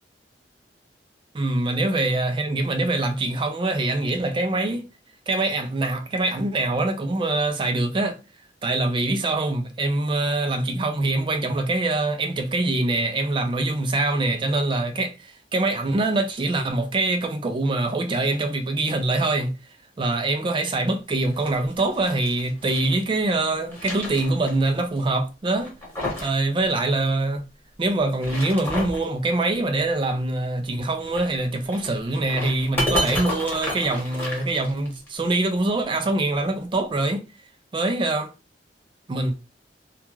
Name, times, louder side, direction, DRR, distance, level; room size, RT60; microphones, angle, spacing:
voice 1, 1.3-4.9 5.3-8.2 8.6-19.5 20.0-25.7 26.2-27.4 27.8-37.2 37.7-38.3 39.1-39.3, right 2 dB, 30° right, 0.3 m, -24 dB
sound 1, 21.2-23.0 23.4-24.7 25.0-25.1 25.6-26.4 26.6-26.7 28.0-29.1 31.0-35.1, left 1 dB, 10° left, 1.1 m, -31 dB
2.3 x 2.2 x 3.0 m
head